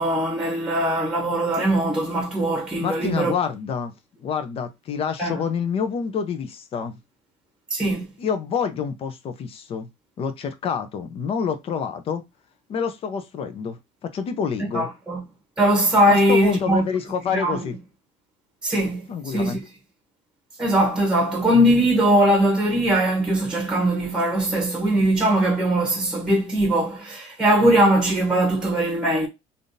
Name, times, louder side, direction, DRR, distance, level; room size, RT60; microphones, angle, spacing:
voice 1, 0.0-3.3 5.2-5.4 7.7-8.1 14.7-15.2 15.6-16.8 17.3-17.7 18.6-19.6 20.6-29.3, right 1 dB, 5° right, 1.1 m, -20 dB
voice 2, 2.8-3.9 4.2-7.0 8.2-9.9 10.2-12.2 12.7-14.9 16.1-17.8 19.1-19.6, left 6 dB, 45° left, 0.6 m, -27 dB
3.5 x 2.6 x 2.6 m
cardioid pair, 110°, 14 cm